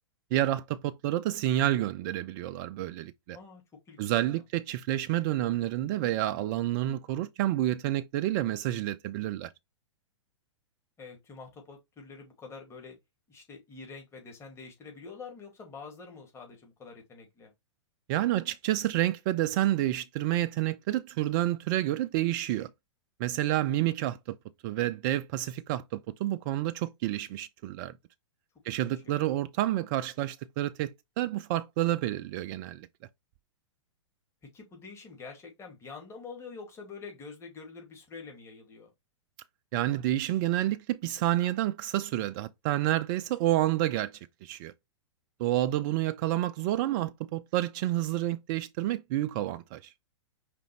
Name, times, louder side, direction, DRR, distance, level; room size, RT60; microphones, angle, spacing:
voice 1, 0.3-3.4 4.0-9.5 18.1-22.7 23.2-24.2 24.6-27.9 28.6-32.9 39.7-44.1 44.4-44.7 45.4-49.9, right 14 dB, 40° right, 0.4 m, -29 dB
voice 2, 3.3-4.4 11.0-13.0 13.3-17.5 28.7-29.3 34.5-38.9, left 4 dB, 15° left, 2.0 m, -46 dB
5.1 x 3.3 x 3.1 m
hypercardioid pair, 115°, 16 cm